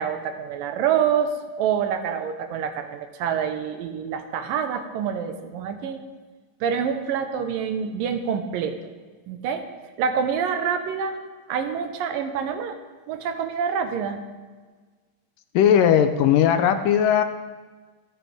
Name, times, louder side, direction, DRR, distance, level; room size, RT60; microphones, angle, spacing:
voice 1, 0.0-1.3 1.6-6.0 6.6-8.8 9.3-9.7 10.0-11.2 11.5-12.8 13.1-14.2, right 7 dB, 80° right, 7 dB, 2.6 m, -26 dB
voice 2, 15.5-17.2, left 9 dB, 75° left, 9 dB, 2.2 m, -18 dB
25.5 x 9.0 x 3.5 m, 1.4 s
omnidirectional pair, 4.1 m